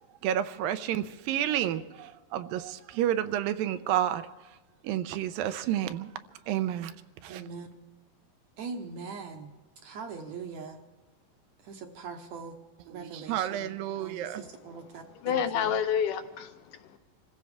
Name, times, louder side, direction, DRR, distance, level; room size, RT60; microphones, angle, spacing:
voice 1, 0.2-4.3 4.8-6.1 6.5-7.0 7.2-7.4 12.9-14.4, right 11 dB, 85° right, 11 dB, 2.4 m, -30 dB
voice 2, 7.3-7.7 8.6-9.5 9.8-10.8 11.6-12.6 12.9-15.7, right 5 dB, 70° right, 4 dB, 1.9 m, -42 dB
voice 3, 15.2-17.0, left 8 dB, 75° left, 7 dB, 2.2 m, -29 dB
26.5 x 15.5 x 3.5 m, 1.2 s
omnidirectional pair, 4.0 m